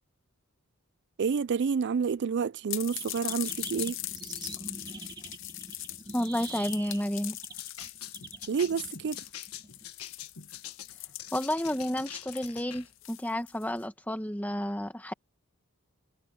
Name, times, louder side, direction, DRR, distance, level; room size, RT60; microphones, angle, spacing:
voice 1, 1.2-4.0 8.5-9.2, right 6 dB, 50° right, 0.4 m, -29 dB
sound 1, 2.7-13.8, left 15 dB, 60° left, 0.8 m, -41 dB
sound 2, 2.9-9.8, right 3 dB, 20° right, 1.3 m, -45 dB
voice 2, 6.1-7.4 11.3-15.1, equal, 5° left, 1.4 m, -31 dB
sound 3, 7.6-12.9, left 10 dB, 80° left, 1.5 m, -44 dB
head